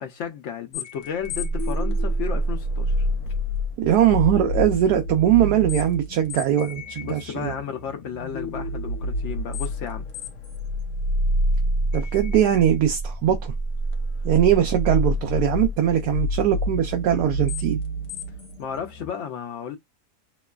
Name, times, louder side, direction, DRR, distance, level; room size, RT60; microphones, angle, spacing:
voice 1, 0.0-3.1 7.0-10.1 18.6-19.8, left 7 dB, 90° left, 0.6 m, -33 dB
sound 1, 0.7-19.1, equal, 70° left, 1.1 m, -27 dB
voice 2, 3.8-7.5 11.9-13.5 14.2-17.8, right 10 dB, 75° right, 1.0 m, -21 dB
3.0 x 2.1 x 2.3 m
omnidirectional pair, 1.8 m